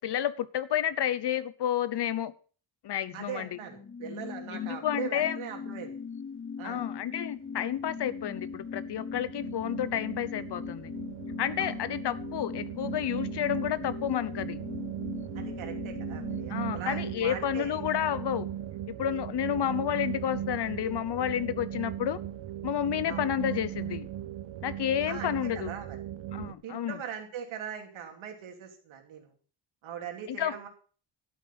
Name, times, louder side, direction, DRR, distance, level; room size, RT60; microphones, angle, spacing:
voice 1, 0.0-2.3 2.8-3.6 4.6-5.4 6.6-10.9 11.4-14.6 16.5-18.5 18.9-22.2 22.6-24.1 24.6-25.7 26.3-27.0 30.3-30.6, left 10 dB, 60° left, 17 dB, 1.0 m, -30 dB
voice 2, 3.1-5.9 6.6-6.9 11.6-11.7 15.3-17.8 23.1-23.3 25.1-26.0 26.6-29.3 29.8-30.7, right 8 dB, 90° right, 3 dB, 3.0 m, -40 dB
sound 1, 3.5-18.6 18.8-18.9, left 6 dB, 25° left, 0.7 m, -40 dB
sound 2, 7.5-26.5, right 11 dB, 70° right, 0.9 m, -38 dB
12.0 x 8.4 x 5.6 m, 0.40 s
cardioid pair, 95°, 46 cm